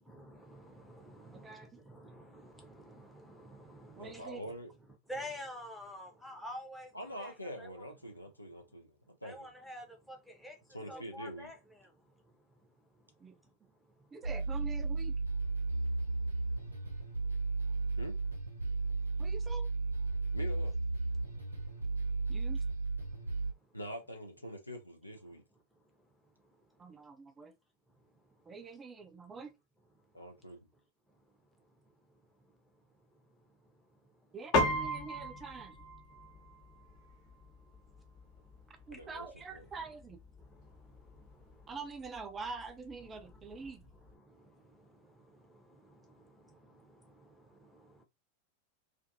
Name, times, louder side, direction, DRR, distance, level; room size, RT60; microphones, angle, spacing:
voice 1, 0.0-4.5 5.1-7.9 9.2-14.2 15.5-18.0 18.7-19.3 20.1-20.4 21.2-22.5 23.0-23.8 25.3-25.4 25.7-27.1 27.9-28.6 29.9-30.5 31.1-34.4 36.1-39.0 40.4-41.8 43.1-48.0, equal, ahead, 0.8 m, -53 dB
voice 2, 1.3-1.7 4.0-4.4 10.8-11.1 13.2-13.4 14.1-15.1 19.2-19.7 22.3-22.6 26.8-27.5 28.5-29.5 34.3-35.8 38.7-40.2 41.7-43.8, right 4 dB, 20° right, 0.4 m, -45 dB
voice 3, 4.0-4.7 6.9-9.4 10.7-11.5 18.0-18.2 20.3-20.7 23.7-25.4 30.1-30.6 38.9-39.3 39.5-39.6, equal, 85° left, 0.6 m, -44 dB
sound 1, 14.2-23.5, right 3 dB, 80° right, 0.8 m, -34 dB
Piano, 34.5-44.1, left 1 dB, 40° left, 0.9 m, -39 dB
2.5 x 2.5 x 2.5 m
figure-of-eight pair, 90°, 0 cm